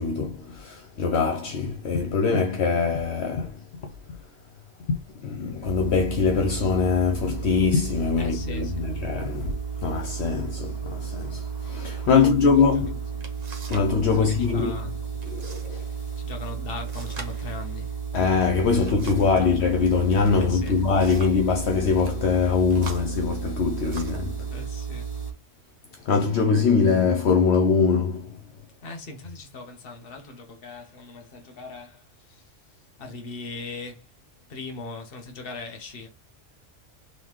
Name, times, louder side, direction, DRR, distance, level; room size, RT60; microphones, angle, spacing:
voice 1, 0.0-3.9 4.9-13.0 13.7-14.8 15.2-15.9 18.1-24.5 25.9-28.4, left 5 dB, 65° left, 0.9 m, -23 dB
sound 1, 5.6-25.3, right 6 dB, 20° right, 1.6 m, -33 dB
voice 2, 8.2-8.9 12.1-12.3 12.7-12.8 13.2-13.3 14.1-14.9 16.2-17.9 20.4-20.9 24.5-25.1 28.8-32.5 33.0-34.1 34.5-36.1, left 3 dB, 50° left, 1.3 m, -40 dB
sound 2, 13.2-13.9 14.2-14.7 15.2-15.7 16.0-16.1 16.8-19.4 20.4-21.5 21.9-22.2 22.7-24.3 25.1-25.3 25.8-26.3, right 4 dB, 40° right, 0.8 m, -44 dB
3.8 x 3.6 x 3.0 m
omnidirectional pair, 1.3 m